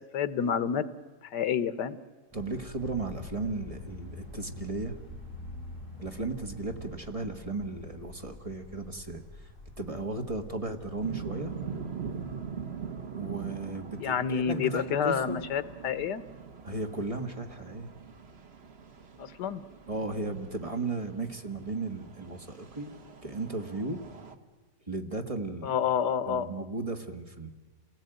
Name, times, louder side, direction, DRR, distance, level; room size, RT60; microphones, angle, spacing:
voice 1, 0.1-0.9 1.3-2.0 14.0-16.2 19.2-19.6 25.6-26.6, left 7 dB, 75° left, 14 dB, 1.6 m, -29 dB
sound 1, 2.3-11.0, left 1 dB, 5° left, 7.4 m, -46 dB
voice 2, 2.3-5.0 6.0-9.2 9.8-11.5 13.1-15.4 16.6-17.9 19.9-22.9 23.2-24.0 24.9-25.7 26.3-27.5, right 3 dB, 20° right, 4 dB, 1.6 m, -35 dB
sound 2, 11.0-24.4, right 6 dB, 40° right, 1.4 m, -43 dB
27.5 x 18.5 x 9.1 m, 1.4 s
omnidirectional pair, 1.8 m